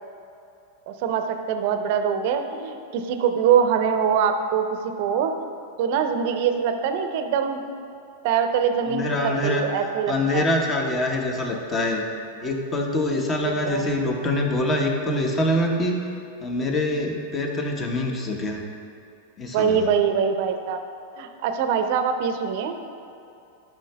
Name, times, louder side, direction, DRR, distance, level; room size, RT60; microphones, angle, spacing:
voice 1, 0.9-5.3 5.8-7.6 8.2-10.5 13.4-13.8 19.5-20.8 21.2-22.7, right 7 dB, 55° right, 7 dB, 0.5 m, -23 dB
voice 2, 8.9-9.6 10.1-12.0 12.4-16.0 16.4-18.6 19.4-19.9, left 1 dB, 25° left, 1 dB, 1.0 m, -24 dB
11.5 x 5.9 x 2.3 m, 2.7 s
hypercardioid pair, 100°, 0 cm